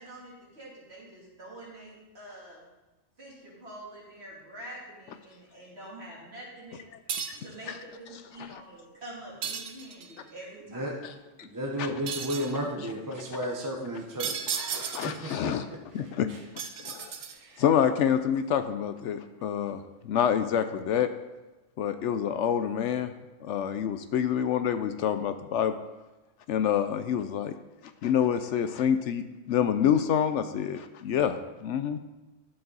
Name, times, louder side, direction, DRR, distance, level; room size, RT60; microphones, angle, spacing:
voice 1, 0.0-2.6 3.2-6.8 7.4-7.7 8.0-11.0, right 1 dB, 55° right, -6 dB, 3.1 m, -46 dB
sound 1, 7.1-7.5 9.4-10.2 12.1-12.6 14.2-15.3 16.6-17.6, right 7 dB, 85° right, 1.2 m, -34 dB
voice 2, 11.4-15.8 16.3-16.4 17.4-17.6, equal, 20° right, 1 dB, 0.8 m, -34 dB
voice 3, 14.9-15.7 15.9-16.3 16.8-17.1 17.6-19.8 20.0-21.1 21.8-23.1 23.4-25.7 26.5-27.6 28.0-32.0, left 9 dB, 70° left, 10 dB, 0.8 m, -27 dB
11.0 x 7.0 x 4.0 m, 1.1 s
omnidirectional pair, 1.3 m